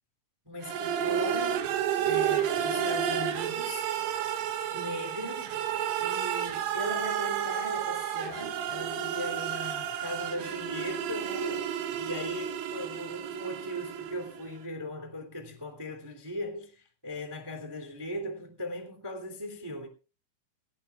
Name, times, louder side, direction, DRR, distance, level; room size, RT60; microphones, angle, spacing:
voice 1, 0.4-3.9 4.7-5.7 6.0-19.9, equal, 10° right, 1.8 m, -38 dB
sound 1, 0.6-14.5, right 9 dB, 75° right, 2.2 m, -31 dB
18.0 x 17.5 x 2.4 m
omnidirectional pair, 5.3 m